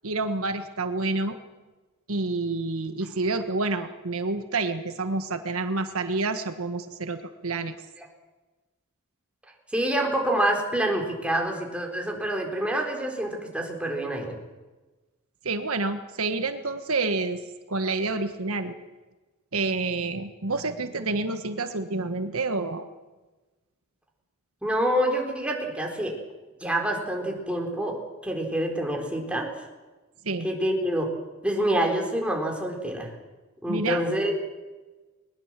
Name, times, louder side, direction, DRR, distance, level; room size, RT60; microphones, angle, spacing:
voice 1, 0.0-1.4 2.1-7.7 15.4-18.7 19.5-22.9 30.2-30.5 33.7-34.0, right 3 dB, 75° right, 8 dB, 1.5 m, -28 dB
voice 2, 9.7-14.4 24.6-26.1 26.6-28.0 28.2-29.5 30.4-31.1 31.4-33.1 33.6-34.4, right 1 dB, 5° right, 1 dB, 4.2 m, -27 dB
21.0 x 20.5 x 7.6 m, 1.2 s
head